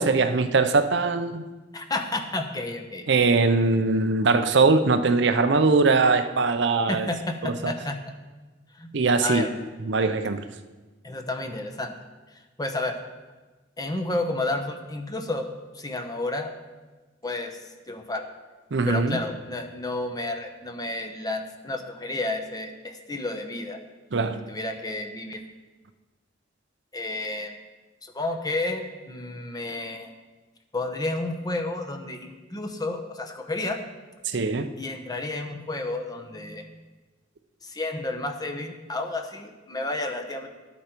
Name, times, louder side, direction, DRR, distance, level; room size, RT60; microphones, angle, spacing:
voice 1, 0.0-1.4 3.1-7.1 7.4-7.7 8.9-9.5 9.8-10.4 18.7-19.2 24.1-24.4 34.2-34.7, right 3 dB, 65° right, 9 dB, 0.6 m, -21 dB
voice 2, 1.7-3.1 6.9-8.0 8.7-9.5 11.0-11.9 12.6-13.0 13.8-15.5 15.7-16.5 17.2-18.2 18.9-23.8 24.5-25.4 26.9-27.6 28.0-30.1 30.7-33.8 34.8-36.8 37.6-40.5, left 2 dB, 20° left, 5 dB, 0.9 m, -31 dB
11.5 x 8.3 x 4.5 m, 1.2 s
head